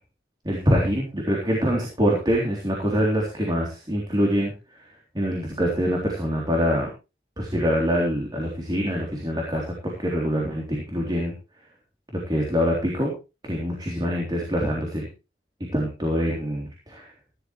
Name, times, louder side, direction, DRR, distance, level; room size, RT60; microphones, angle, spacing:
voice 1, 0.5-4.5 5.2-6.9 7.4-11.3 12.1-13.1 13.4-15.1 15.7-17.1, equal, 25° right, -2 dB, 3.5 m, -24 dB
16.5 x 11.5 x 3.2 m, 0.29 s
head